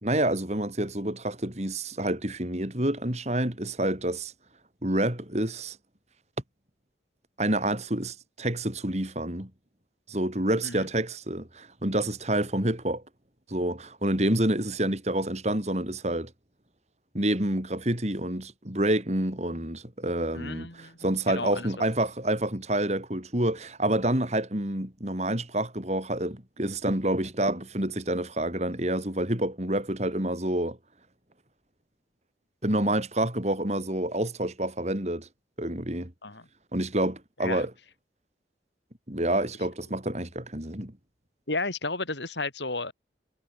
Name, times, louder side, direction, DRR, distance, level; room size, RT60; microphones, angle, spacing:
voice 1, 0.0-4.3 4.8-5.8 7.4-9.5 10.1-13.0 13.5-16.3 17.1-30.8 32.6-35.3 35.6-36.1 36.7-37.7 39.1-40.9, right 1 dB, 40° right, 3.8 m, -28 dB
voice 2, 20.3-21.7 36.2-36.5 37.4-37.7 41.5-42.9, left 3 dB, 80° left, 7.9 m, -33 dB
head